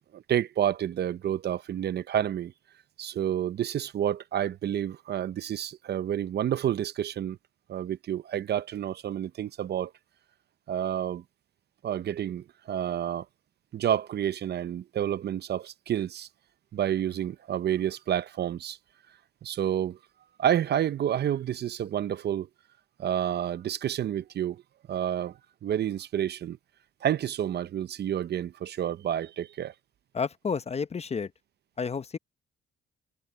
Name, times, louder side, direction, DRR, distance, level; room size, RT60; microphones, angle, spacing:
voice 1, 0.1-2.5 3.0-7.4 7.7-9.9 10.7-11.2 11.8-13.2 13.7-16.3 16.7-18.8 19.4-20.0 20.4-22.5 23.0-24.6 24.9-26.6 27.0-29.7, right 10 dB, 55° right, 0.7 m, -29 dB
voice 2, 30.1-31.3 31.8-32.2, left 5 dB, 30° left, 0.9 m, -31 dB
cardioid pair, 90°, 20 cm